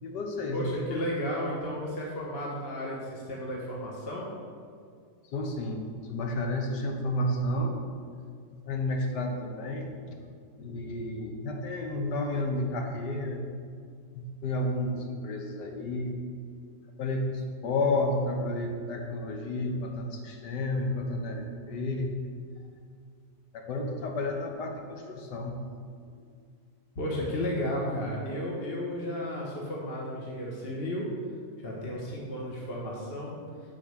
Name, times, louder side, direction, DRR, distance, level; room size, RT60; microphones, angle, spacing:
voice 1, 0.0-1.0 5.3-7.8 8.7-9.9 10.6-13.4 14.2-16.1 17.0-22.1 23.5-25.6, left 1 dB, 75° left, 2 dB, 1.8 m, -31 dB
voice 2, 0.5-4.3 26.9-31.1 31.6-33.4, equal, 35° left, -3 dB, 1.5 m, -33 dB
7.6 x 7.6 x 6.5 m, 2.2 s
omnidirectional pair, 1.9 m